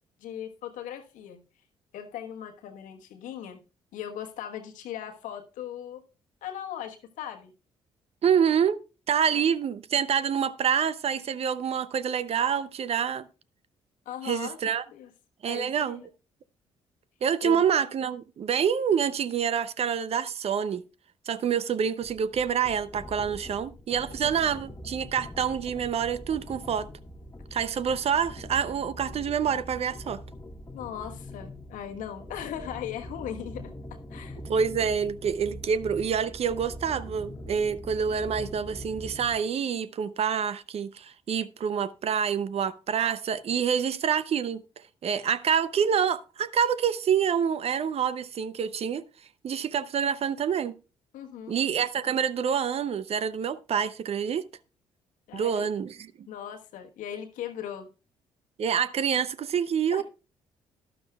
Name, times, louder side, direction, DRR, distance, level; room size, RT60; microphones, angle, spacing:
voice 1, 0.2-1.4 1.9-3.6 3.9-6.0 6.4-7.5 9.3-9.4 14.0-14.6 14.9-15.1 15.4-16.1 17.4-17.6 24.2-24.3 30.7-33.7 34.1-34.4 51.1-51.5 55.3-55.7 56.3-57.9 59.9-60.0, left 10 dB, 65° left, 1.3 m, -38 dB
voice 2, 8.2-8.8 9.1-13.3 14.2-14.8 15.4-16.0 17.2-20.8 21.3-26.9 27.5-30.2 34.5-44.6 45.0-49.0 49.4-50.7 51.5-54.5 55.3-56.3 58.6-60.0, right 7 dB, 45° right, 0.6 m, -27 dB
sound 1, 22.0-39.5, equal, 20° left, 1.0 m, -43 dB
12.0 x 11.5 x 2.3 m
hypercardioid pair, 45°, 14 cm